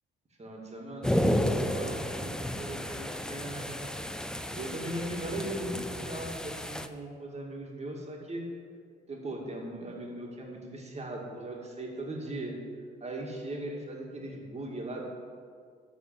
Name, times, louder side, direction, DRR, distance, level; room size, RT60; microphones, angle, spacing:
voice 1, 0.4-3.9 4.5-8.4 9.1-12.5 13.0-15.1, right 1 dB, 35° right, -1 dB, 2.2 m, -39 dB
sound 1, 1.0-6.9, equal, 5° left, 0.5 m, -32 dB
12.5 x 4.2 x 7.5 m, 2.2 s
cardioid pair, 90°, 20 cm